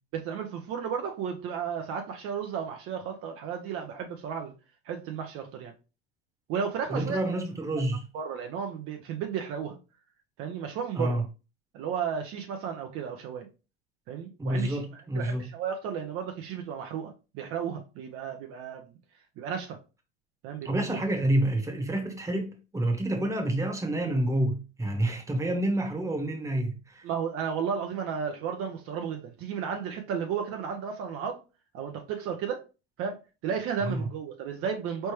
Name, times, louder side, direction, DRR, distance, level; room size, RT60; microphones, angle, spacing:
voice 1, 0.1-4.5 4.9-5.7 6.5-7.3 8.1-9.8 10.4-11.2 11.7-13.5 14.1-18.9 19.4-19.8 20.4-21.0 27.0-31.4 31.7-32.6 33.0-35.1, right 7 dB, 50° right, 0.7 m, -33 dB
voice 2, 6.9-8.0 10.9-11.2 14.4-15.5 20.6-27.1 33.8-34.0, right 1 dB, 10° right, 1.2 m, -28 dB
4.2 x 3.3 x 3.1 m
hypercardioid pair, 95°, 30 cm